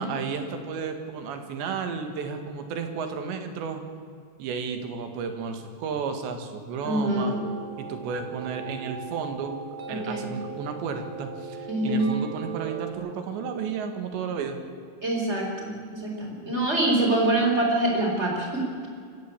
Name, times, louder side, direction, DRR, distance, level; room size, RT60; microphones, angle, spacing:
voice 1, 0.0-3.8 4.4-7.4 7.8-9.6 9.9-14.6, right 6 dB, 85° right, 6 dB, 4.1 m, -33 dB
voice 2, 6.8-7.5 9.9-10.3 11.7-12.1 15.0-18.6, right 1 dB, 15° right, 0 dB, 4.3 m, -25 dB
sound 1, 6.9-12.9, right 6 dB, 55° right, 4.0 m, -39 dB
25.0 x 14.5 x 8.6 m, 2.2 s
omnidirectional pair, 5.0 m